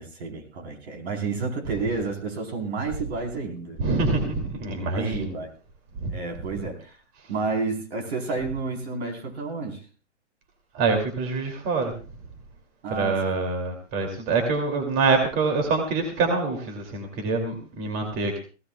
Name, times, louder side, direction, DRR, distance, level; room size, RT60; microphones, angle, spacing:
voice 1, 0.0-3.8 4.9-5.5 6.1-6.9 7.3-9.8 12.8-13.2, right 4 dB, 60° right, 4 dB, 4.2 m, -30 dB
voice 2, 3.8-5.3 6.0-6.1 10.7-11.9 12.9-18.4, right 4 dB, 25° right, 4 dB, 2.6 m, -25 dB
22.0 x 17.0 x 2.3 m, 0.34 s
hypercardioid pair, 155°, 36 cm